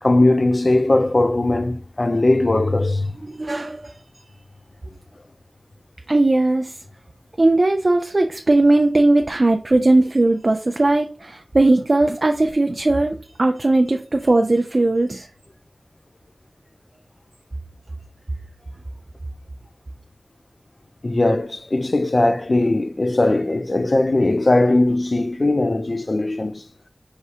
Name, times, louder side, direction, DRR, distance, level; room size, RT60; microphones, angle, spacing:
voice 1, 0.0-3.1 21.0-26.6, left 2 dB, 45° left, 0.4 m, -19 dB
voice 2, 3.2-4.3 6.1-6.8 7.4-15.3, right 2 dB, 50° right, 0.4 m, -18 dB
4.8 x 3.2 x 2.8 m
wide cardioid pair, 70°, 0 cm